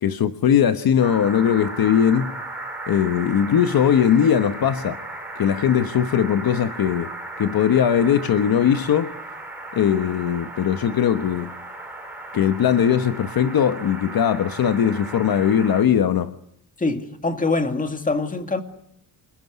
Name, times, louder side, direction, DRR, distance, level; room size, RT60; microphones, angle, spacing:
voice 1, 0.0-2.3 2.9-5.0 5.3-7.1 7.4-9.1 9.7-11.5 12.3-16.3, left 8 dB, 55° left, 1.2 m, -20 dB
sound 1, 1.0-15.8, right 2 dB, 5° right, 5.3 m, -36 dB
voice 2, 16.8-18.6, left 3 dB, 20° left, 2.4 m, -24 dB
28.0 x 21.0 x 9.6 m
wide cardioid pair, 150°, 42 cm